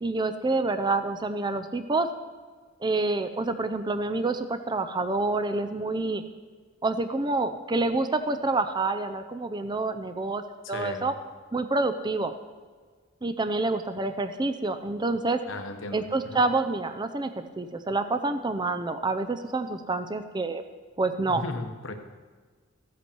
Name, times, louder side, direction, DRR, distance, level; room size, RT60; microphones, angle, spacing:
voice 1, 0.0-2.1 2.8-6.2 6.8-10.4 10.7-11.1 11.5-12.3 13.2-15.4 15.9-20.6 21.0-21.4, right 3 dB, 20° right, 10 dB, 0.5 m, -27 dB
voice 2, 10.6-11.1 15.5-16.4 21.3-21.9, left 2 dB, 85° left, 5 dB, 1.2 m, -36 dB
15.0 x 8.2 x 4.6 m, 1.5 s
head